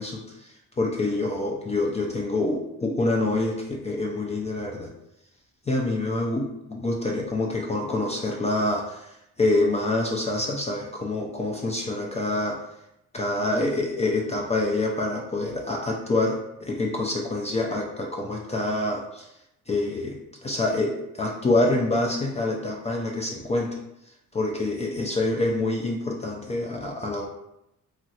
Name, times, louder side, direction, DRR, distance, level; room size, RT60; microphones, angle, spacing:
voice 1, 0.0-4.9 5.7-12.6 13.1-19.3 19.7-23.8 24.3-27.3, left 2 dB, 25° left, -1 dB, 0.4 m, -26 dB
3.0 x 2.4 x 2.8 m, 0.85 s
cardioid pair, 90°, 30 cm